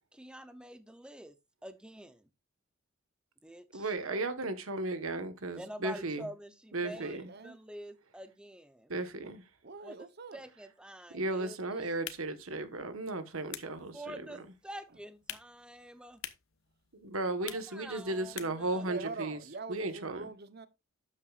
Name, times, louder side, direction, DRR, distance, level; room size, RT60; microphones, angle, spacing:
voice 1, 0.1-1.3 1.6-2.3 3.4-3.9 5.5-8.9 9.8-11.6 13.9-16.2 17.4-18.8, right 1 dB, 5° right, 0.7 m, -47 dB
voice 2, 3.7-6.3 6.7-7.3 8.9-9.4 11.1-14.1 16.9-19.4 19.7-20.2, right 2 dB, 80° right, 1.4 m, -35 dB
voice 3, 6.9-7.6 9.6-10.5 18.8-20.7, right 3 dB, 50° right, 0.9 m, -44 dB
sound 1, 11.9-18.7, left 11 dB, 75° left, 1.0 m, -49 dB
12.0 x 8.5 x 2.5 m
head